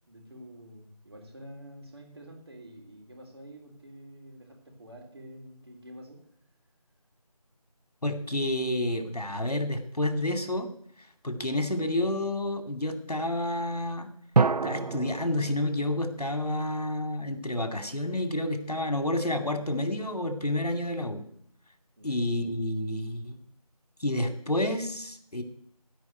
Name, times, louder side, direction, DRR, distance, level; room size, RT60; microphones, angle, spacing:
voice 1, 0.1-6.2 22.0-22.2, equal, 40° right, 0 dB, 3.6 m, -48 dB
voice 2, 8.0-10.7 11.2-14.1 14.6-21.2 22.0-23.4 24.0-25.4, left 1 dB, 75° left, 7 dB, 2.5 m, -29 dB
sound 1, 14.3-17.1, right 4 dB, 85° right, 0.5 m, -29 dB
15.5 x 5.4 x 9.3 m, 0.69 s
figure-of-eight pair, 170°, 20 cm